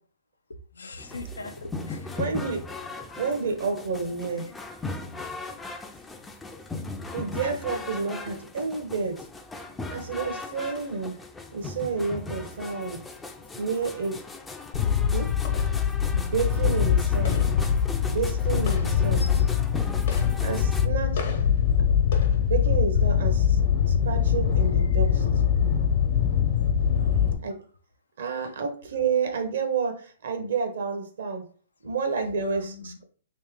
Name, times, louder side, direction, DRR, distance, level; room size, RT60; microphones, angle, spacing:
voice 1, 0.8-2.2 4.3-4.5 19.2-19.5 27.0-27.3 32.4-33.0, left 2 dB, 85° left, 0.5 m, -41 dB
sound 1, 1.0-20.9, left 3 dB, 10° left, 0.4 m, -38 dB
voice 2, 2.2-2.6 3.2-4.4 7.1-9.2 9.9-11.1 11.5-13.0 13.5-14.1 15.1-15.3 16.1-17.4 18.1-19.3 20.4-21.2 22.5-23.6 23.9-25.2 27.4-27.6 28.2-31.4 31.8-33.0, right 5 dB, 70° right, 0.9 m, -29 dB
sound 2, 14.7-27.3, left 8 dB, 60° left, 1.0 m, -23 dB
3.2 x 3.0 x 3.6 m
hypercardioid pair, 125°, 0 cm